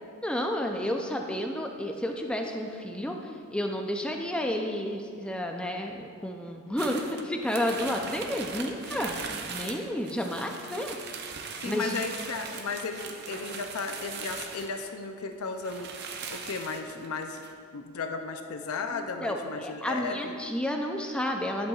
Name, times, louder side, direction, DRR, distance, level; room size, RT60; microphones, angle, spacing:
voice 1, 0.2-11.0 11.6-12.0 18.9-21.7, left 1 dB, 5° left, 3 dB, 0.4 m, -31 dB
sound 1, 6.8-15.0 15.3-15.4 15.6-17.5, right 5 dB, 50° right, 0.6 m, -40 dB
voice 2, 11.6-15.9 16.3-17.4 17.7-20.4, left 4 dB, 80° left, 6 dB, 0.5 m, -35 dB
11.0 x 7.7 x 2.4 m, 2.3 s
head